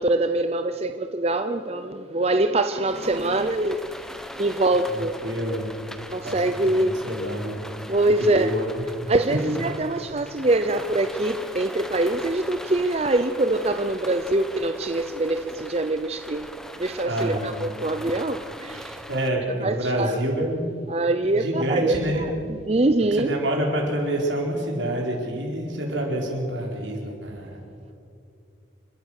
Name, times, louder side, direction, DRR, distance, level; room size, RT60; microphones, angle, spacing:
voice 1, 0.0-3.8 4.4-5.1 6.1-6.9 7.9-8.5 9.1-16.5 16.8-19.0 19.6-20.5 20.9-22.3 22.7-23.3, right 2 dB, 35° right, 8 dB, 0.6 m, -24 dB
sound 1, 2.9-19.3, equal, 5° left, 1.0 m, -40 dB
voice 2, 4.9-5.7 6.2-7.6 8.2-8.8 17.1-17.5 19.1-20.6 21.3-22.2 23.2-27.6, right 1 dB, 75° right, 0 dB, 4.7 m, -27 dB
29.5 x 13.5 x 6.5 m, 2.5 s
head